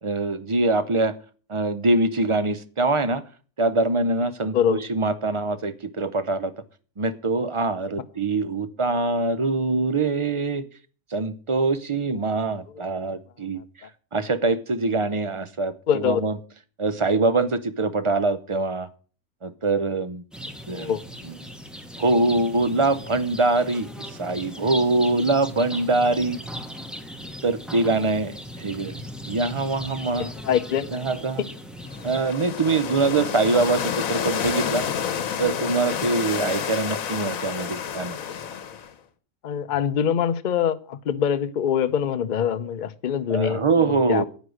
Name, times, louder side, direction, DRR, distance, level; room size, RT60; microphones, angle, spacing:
voice 1, 0.0-1.1 1.5-3.2 3.6-6.5 7.0-10.6 11.1-13.6 14.1-16.4 16.8-18.9 19.4-20.2 20.7-20.9 21.2-21.3 22.0-26.4 27.4-29.0 29.3-30.3 30.9-31.4 32.0-34.8 35.4-38.2 43.3-44.2, right 3 dB, 40° right, 0.4 m, -23 dB
voice 2, 4.5-4.9 15.9-16.2 20.7-21.0 30.2-31.1 39.4-44.2, left 8 dB, 50° left, 0.6 m, -24 dB
sound 1, 20.3-32.2, equal, ahead, 0.9 m, -38 dB
sound 2, 31.9-38.9, left 8 dB, 70° left, 1.3 m, -29 dB
9.7 x 9.2 x 6.4 m
omnidirectional pair, 1.5 m